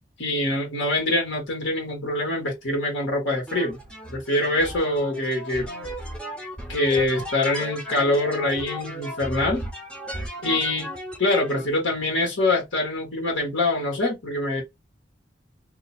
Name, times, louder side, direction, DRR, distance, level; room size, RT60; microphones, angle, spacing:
voice 1, 0.2-3.8 4.1-5.7 6.7-9.7 10.4-10.9 11.2-14.6, left 2 dB, 85° left, 1.6 m, -24 dB
sound 1, 3.5-11.7, equal, 5° left, 0.8 m, -35 dB
2.8 x 2.4 x 4.2 m
head